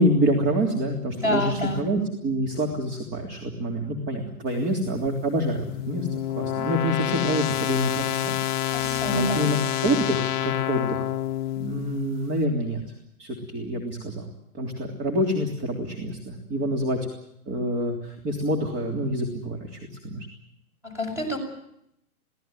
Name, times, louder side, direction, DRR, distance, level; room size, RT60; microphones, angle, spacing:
voice 1, 0.0-6.1 6.3-9.6 9.8-11.1 11.6-12.8 13.2-14.3 14.5-17.0 17.5-20.3, right 1 dB, 25° right, 3 dB, 3.2 m, -27 dB
voice 2, 1.2-1.8 8.7-9.5 20.8-21.4, left 1 dB, 5° right, 3 dB, 6.9 m, -27 dB
sound 1, 5.1-12.2, left 12 dB, 30° left, 1.0 m, -28 dB
23.5 x 17.5 x 9.1 m, 0.77 s
hypercardioid pair, 135°, 44 cm